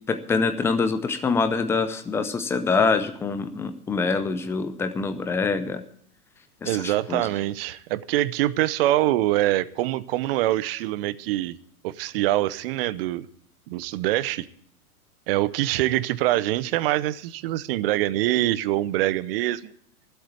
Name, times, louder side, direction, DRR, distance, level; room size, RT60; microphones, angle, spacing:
voice 1, 0.1-5.8 6.6-7.3, left 4 dB, 5° left, 10 dB, 0.5 m, -25 dB
voice 2, 6.6-11.5 11.8-13.3 13.7-14.5 15.3-19.7, right 15 dB, 40° right, 16 dB, 0.7 m, -24 dB
13.5 x 8.1 x 9.1 m, 0.63 s
hypercardioid pair, 130°, 44 cm